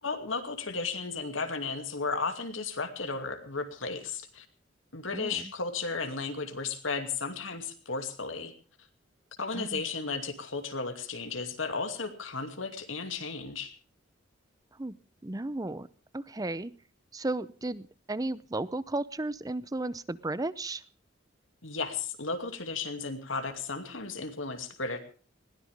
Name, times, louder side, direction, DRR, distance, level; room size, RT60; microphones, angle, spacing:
voice 1, 0.0-4.5 4.9-8.5 9.4-13.7 21.6-25.0, left 4 dB, 85° left, 7 dB, 2.5 m, -34 dB
voice 2, 5.1-5.4 9.5-9.8 14.8-15.0 15.2-15.9 16.1-16.7 17.1-20.8, right 2 dB, 20° right, 18 dB, 0.7 m, -34 dB
21.0 x 17.0 x 3.5 m, 0.39 s
head